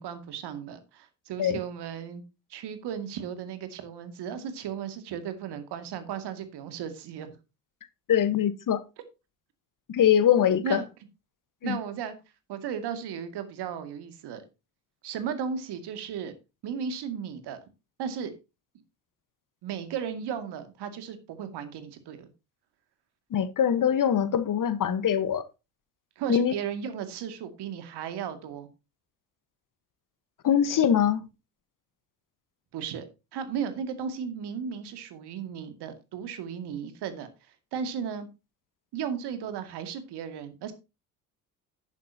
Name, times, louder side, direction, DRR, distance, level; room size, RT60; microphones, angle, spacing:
voice 1, 0.0-2.2 2.5-7.3 10.6-10.9 11.6-12.1 12.5-14.4 15.0-16.3 16.6-17.6 18.0-18.3 19.6-22.3 26.2-28.7 32.7-37.3 37.7-38.3 38.9-40.7, right 7 dB, 60° right, 2.2 m, -35 dB
voice 2, 8.1-8.8 9.9-10.8 11.6-11.8 23.3-25.4 26.3-26.5 30.4-31.2, left 9 dB, 45° left, 1.2 m, -23 dB
11.0 x 9.7 x 2.8 m
hypercardioid pair, 55°, 46 cm